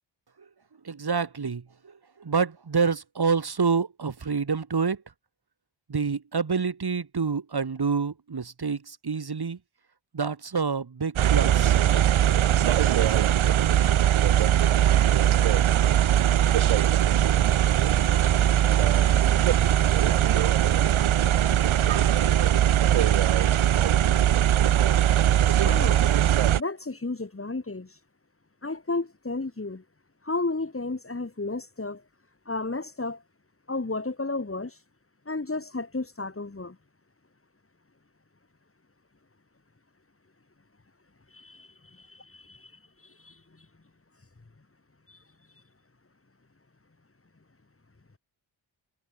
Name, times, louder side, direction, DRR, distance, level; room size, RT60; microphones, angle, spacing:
voice 1, 0.8-5.0 5.9-9.6 10.1-11.8, right 5 dB, 50° right, 5.5 m, -27 dB
sound 1, 11.2-26.6, right 11 dB, 85° right, 1.2 m, -20 dB
voice 2, 25.6-26.0 26.6-27.9 28.6-29.8 30.2-32.0 32.5-33.2 33.7-34.8 35.3-36.8 41.3-42.7 43.0-43.4 45.1-45.2, left 3 dB, 30° left, 4.2 m, -33 dB
cardioid pair, 65°, 47 cm